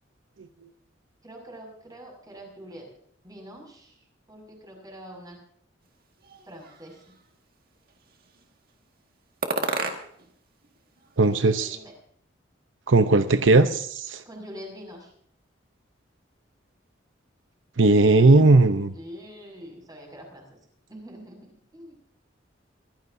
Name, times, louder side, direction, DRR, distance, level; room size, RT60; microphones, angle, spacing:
voice 1, 1.2-2.9 3.2-5.4 6.4-7.2 11.2-11.9 14.2-15.1 18.9-20.4 20.9-22.0, equal, 20° right, 0 dB, 6.3 m, -44 dB
sound 1, 6.2-7.2 7.9-8.5 9.4-10.4 10.6-11.7, right 3 dB, 50° right, 1.9 m, -33 dB
voice 2, 11.2-11.8 12.9-14.2 17.8-18.9, right 3 dB, 85° right, 9 dB, 0.8 m, -18 dB
24.0 x 15.0 x 2.7 m, 0.63 s
head